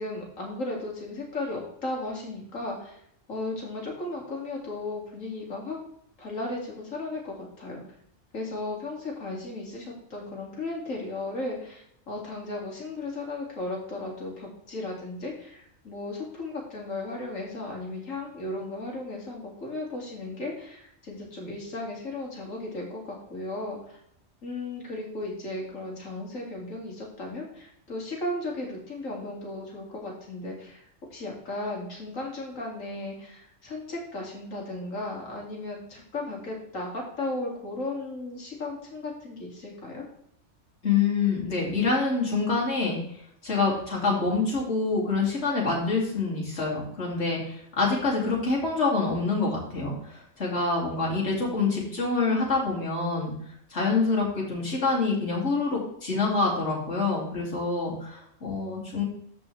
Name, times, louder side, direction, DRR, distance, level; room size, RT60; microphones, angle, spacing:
voice 1, 0.0-3.0 3.3-5.8 6.2-7.8 8.3-24.0 24.4-30.8 31.1-40.0, left 2 dB, 85° left, -1 dB, 2.7 m, -35 dB
voice 2, 40.8-43.0 43.4-53.3 53.7-59.0, left 4 dB, 60° left, -3 dB, 2.9 m, -26 dB
14.0 x 5.3 x 3.3 m, 0.69 s
omnidirectional pair, 1.3 m